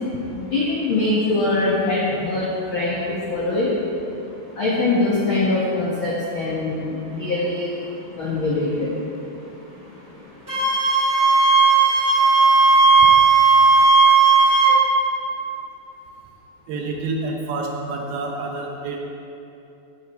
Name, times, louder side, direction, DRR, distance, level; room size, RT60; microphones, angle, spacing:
voice 1, 0.3-3.7 4.5-9.0 10.5-10.6, left 2 dB, 75° left, -7 dB, 1.1 m, -23 dB
Wind instrument woodwind instrument, 10.5-14.8, right 4 dB, 5° right, 1.6 m, -15 dB
voice 2, 16.7-19.0, right 3 dB, 75° right, 1 dB, 2.5 m, -28 dB
16.0 x 7.5 x 4.4 m, 2.8 s
omnidirectional pair, 5.0 m